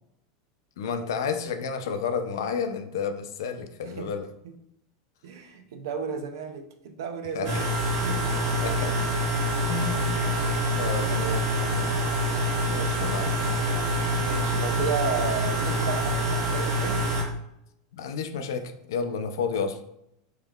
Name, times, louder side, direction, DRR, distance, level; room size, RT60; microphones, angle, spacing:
voice 1, 0.8-4.3 7.3-7.6 8.6-9.0 9.7-10.1 10.7-11.3 12.7-13.4 17.9-19.8, left 6 dB, 90° left, 7 dB, 0.4 m, -31 dB
voice 2, 5.2-8.4 10.1-10.5 11.1-12.0 14.2-17.0, right 6 dB, 80° right, 6 dB, 0.5 m, -33 dB
sound 1, 7.4-17.2, equal, 45° right, 1.1 m, -26 dB
3.5 x 3.1 x 2.3 m, 0.77 s
supercardioid pair, 180°, 2 cm